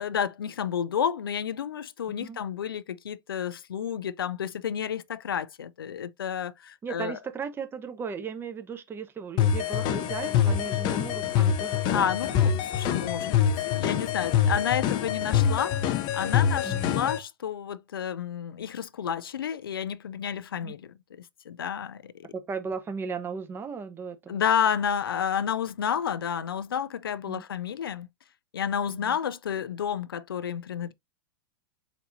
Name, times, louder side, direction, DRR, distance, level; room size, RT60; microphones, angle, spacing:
voice 1, 0.0-7.2 11.9-22.1 24.3-28.1 28.5-30.9, left 8 dB, 85° left, 0.4 m, -30 dB
voice 2, 6.8-12.2 12.5-12.6 16.6-16.9 20.6-20.7 22.3-24.4 27.3-27.4 28.9-29.2, right 5 dB, 20° right, 0.8 m, -36 dB
sound 1, 9.4-17.2, left 8 dB, 40° left, 0.6 m, -25 dB
4.3 x 4.1 x 2.5 m
hypercardioid pair, 105°, 12 cm